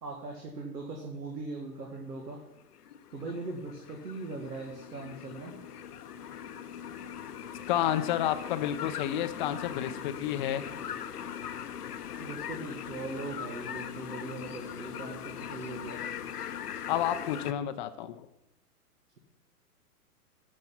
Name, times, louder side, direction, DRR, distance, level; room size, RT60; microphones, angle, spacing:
voice 1, 0.0-2.4 3.1-5.5 12.2-16.0, right 3 dB, 85° right, 1 dB, 1.8 m, -40 dB
sound 1, 2.5-17.5, left 9 dB, 75° left, 0.8 m, -40 dB
voice 2, 7.7-10.7 16.9-18.3, left 11 dB, 30° left, 10 dB, 0.5 m, -30 dB
11.0 x 5.3 x 5.9 m, 0.84 s
figure-of-eight pair, 110°, 47 cm